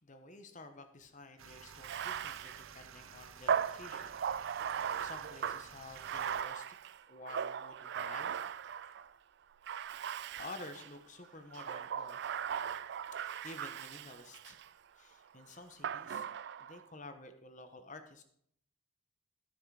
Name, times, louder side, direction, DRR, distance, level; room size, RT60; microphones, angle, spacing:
voice 1, 0.0-4.2 4.7-6.8 7.1-8.7 10.4-14.6 14.9-16.2 16.6-18.2, left 2 dB, 35° left, 8 dB, 1.1 m, -51 dB
sound 1, 1.4-6.4, right 7 dB, 70° right, 0.7 m, -54 dB
Bathtub (filling or washing), 1.7-9.1 9.6-10.9 11.5-14.7 15.8-16.8, right 8 dB, 50° right, 0.3 m, -38 dB
14.0 x 6.5 x 4.8 m, 0.66 s
head